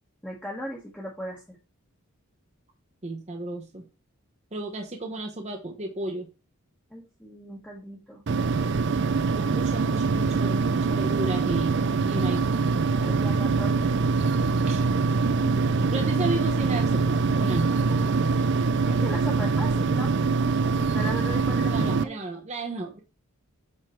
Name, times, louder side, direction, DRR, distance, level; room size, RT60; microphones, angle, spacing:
voice 1, 0.2-1.6 6.9-8.2 13.0-13.9 18.9-20.1 20.7-22.2, equal, 5° left, -4 dB, 1.2 m, -37 dB
voice 2, 3.0-3.8 4.5-6.3 9.3-11.8 12.1-12.5 14.7-14.8 15.8-17.8 21.6-23.0, right 2 dB, 30° right, 2 dB, 0.9 m, -33 dB
sound 1, 8.3-22.0, right 4 dB, 50° right, 0.4 m, -24 dB
7.7 x 3.8 x 4.4 m, 0.30 s
head